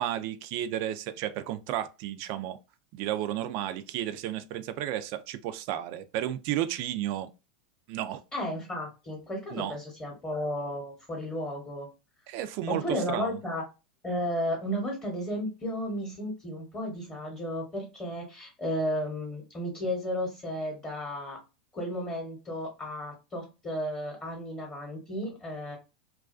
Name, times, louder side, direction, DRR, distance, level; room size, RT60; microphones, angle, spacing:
voice 1, 0.0-2.6 2.9-7.3 7.9-8.2 9.5-9.8 12.3-13.4, right 12 dB, 55° right, 0.4 m, -33 dB
voice 2, 8.3-11.9 12.7-13.6 14.0-21.4 21.7-25.8, equal, 20° left, 0.9 m, -33 dB
2.3 x 2.3 x 2.3 m
supercardioid pair, 120°, 5 cm